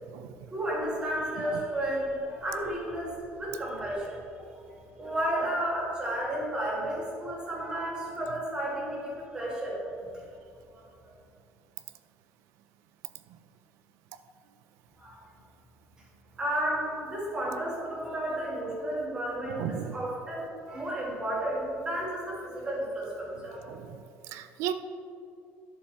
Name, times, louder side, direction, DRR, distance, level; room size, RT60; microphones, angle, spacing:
voice 1, 0.5-4.6 5.0-9.8 10.1-10.2 10.7-11.1 15.0-15.2 16.4-23.7, right 1 dB, 15° right, -5 dB, 2.1 m, -32 dB
voice 2, 19.6-20.0 23.7-24.7, right 10 dB, 80° right, 11 dB, 0.5 m, -35 dB
11.0 x 7.0 x 3.5 m, 2.5 s
cardioid pair, 165°, 5 cm